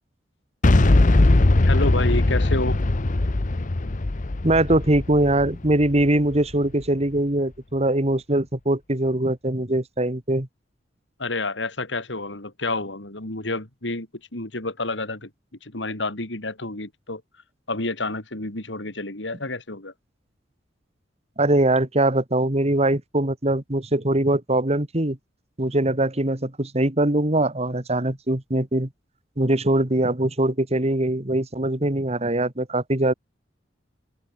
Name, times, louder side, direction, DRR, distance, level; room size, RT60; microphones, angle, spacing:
Boom, 0.6-6.5, left 2 dB, 45° left, 0.8 m, -20 dB
voice 1, 1.6-2.8 11.2-14.1 14.3-15.3 15.6-17.2 17.7-19.9, left 2 dB, 80° left, 3.8 m, -29 dB
voice 2, 4.4-10.5 21.4-25.2 25.6-28.9 29.4-33.1, right 1 dB, 35° right, 2.2 m, -22 dB
open air
head